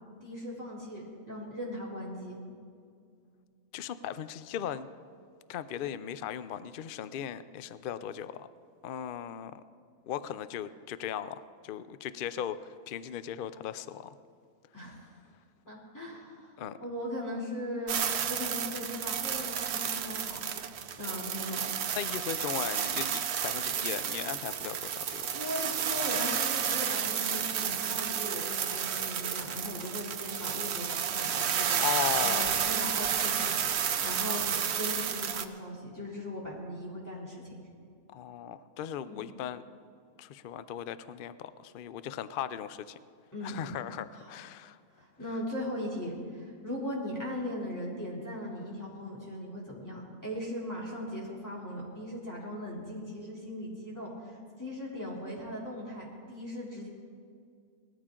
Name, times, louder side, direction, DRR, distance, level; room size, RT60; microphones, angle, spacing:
voice 1, 0.2-2.4 14.7-15.1 15.7-16.5 16.8-20.5 21.0-21.6 25.3-31.8 32.2-37.6 39.1-39.2 43.3-43.6 44.1-44.4 45.0-56.9, left 1 dB, 10° left, -5 dB, 3.0 m, -39 dB
voice 2, 3.7-4.9 5.5-8.5 8.8-9.6 10.0-14.1 16.6-16.8 21.9-25.3 31.8-32.6 38.1-39.6 40.2-43.0 43.4-44.8, left 9 dB, 75° left, 14 dB, 0.4 m, -37 dB
sound 1, 17.9-35.4, right 8 dB, 55° right, 0.9 m, -31 dB
19.0 x 13.5 x 3.8 m, 2.3 s
omnidirectional pair, 1.5 m